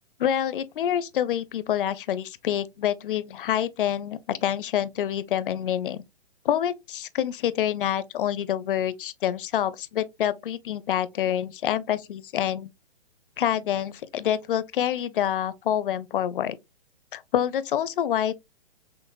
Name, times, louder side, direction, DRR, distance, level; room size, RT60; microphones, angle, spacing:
voice 1, 0.2-6.0 6.4-12.7 13.4-16.6 17.1-18.3, left 10 dB, 55° left, 0.5 m, -27 dB
5.8 x 2.0 x 2.4 m
hypercardioid pair, 140°, 31 cm